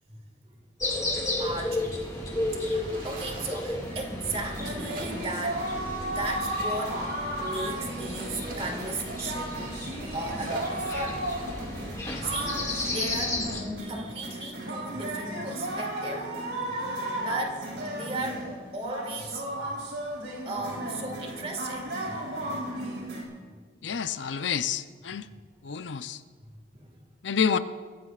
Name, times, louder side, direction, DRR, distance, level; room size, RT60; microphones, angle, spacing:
sound 1, 0.8-13.6, left 2 dB, 20° left, 2.1 m, -34 dB
voice 1, 1.4-2.0 2.5-5.7 6.1-7.1 7.3-9.7 10.1-11.3 12.1-13.4 13.8-16.3 16.8-17.6 17.9-18.4 18.7-19.6 20.5-22.2 22.4-22.5 26.7-27.0, right 2 dB, 30° right, 2 dB, 1.9 m, -36 dB
sound 2, 1.5-13.5, right 2 dB, 45° right, 2.1 m, -46 dB
sound 3, 3.8-23.2, right 1 dB, 75° right, 3.8 m, -34 dB
voice 2, 23.8-25.3 25.6-26.2 27.2-27.6, left 7 dB, 80° left, 11 dB, 0.6 m, -28 dB
23.5 x 15.5 x 2.5 m, 1.5 s
head